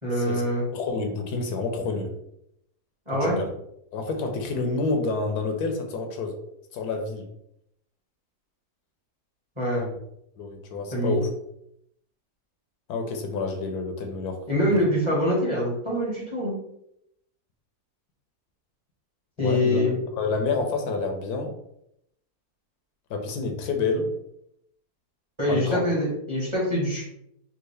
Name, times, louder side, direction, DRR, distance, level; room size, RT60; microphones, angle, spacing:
voice 1, 0.0-0.6 3.1-3.4 9.6-9.8 10.9-11.2 14.5-16.5 19.4-20.0 25.4-27.0, equal, 20° right, -6 dB, 1.1 m, -24 dB
voice 2, 0.7-2.1 3.2-3.4 3.9-6.4 6.7-7.3 9.8-10.0 10.4-11.3 12.9-14.4 14.7-14.8 19.4-21.5 23.1-24.1 25.5-25.8, left 3 dB, 80° left, 4 dB, 1.1 m, -28 dB
3.6 x 2.4 x 3.2 m, 0.76 s
omnidirectional pair, 1.7 m